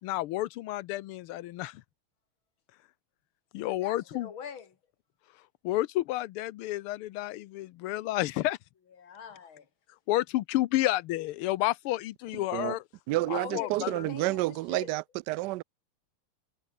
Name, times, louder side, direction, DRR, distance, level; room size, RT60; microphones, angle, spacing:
voice 1, 0.0-1.8 3.5-4.3 5.6-8.6 10.1-12.8 13.3-14.0, left 16 dB, 85° left, 1.6 m, -30 dB
voice 2, 3.6-4.8 9.0-9.7 13.1-14.9, left 7 dB, 65° left, 3.0 m, -43 dB
voice 3, 13.1-15.6, right 19 dB, 85° right, 0.9 m, -30 dB
omnidirectional pair, 2.4 m